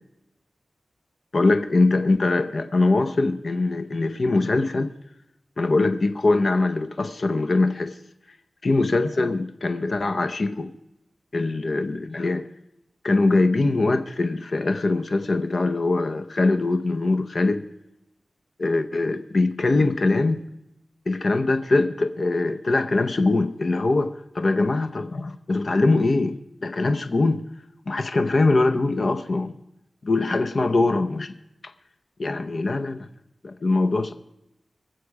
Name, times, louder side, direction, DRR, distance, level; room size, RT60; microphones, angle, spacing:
voice 1, 1.3-4.9 5.6-8.0 8.6-10.7 11.3-12.4 13.0-17.6 18.6-20.4 21.1-27.4 27.9-29.6 30.0-31.3 32.2-33.1 33.4-34.1, left 2 dB, 50° left, 0.7 m, -22 dB
23.0 x 7.8 x 4.7 m
wide cardioid pair, 115°, 0 cm